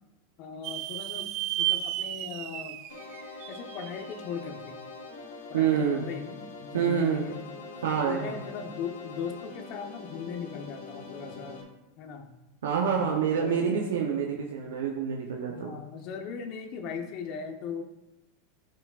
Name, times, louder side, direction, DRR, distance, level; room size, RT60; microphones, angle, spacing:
voice 1, 0.4-1.3 1.6-2.8 3.5-4.8 5.5-7.4 8.1-11.7 12.0-12.3 13.0-14.0 15.5-17.8, left 6 dB, 50° left, 5 dB, 1.2 m, -39 dB
sound 1, 0.6-4.2, right 14 dB, 55° right, 0.5 m, -33 dB
sound 2, 2.9-11.6, left 3 dB, 80° left, 1.5 m, -44 dB
voice 2, 5.5-6.1 6.7-7.3 7.8-8.3 12.6-15.8, right 7 dB, 80° right, 0 dB, 0.9 m, -27 dB
9.6 x 6.8 x 2.5 m, 0.95 s
hypercardioid pair, 105°, 0 cm